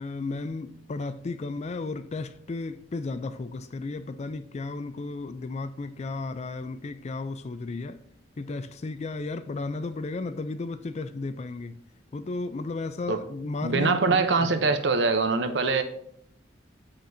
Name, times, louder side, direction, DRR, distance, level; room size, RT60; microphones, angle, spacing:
voice 1, 0.0-8.0 8.4-11.8 12.1-14.8, left 3 dB, 40° left, 0.4 m, -34 dB
voice 2, 13.6-15.8, right 4 dB, 75° right, 0.7 m, -23 dB
13.0 x 4.3 x 2.7 m
head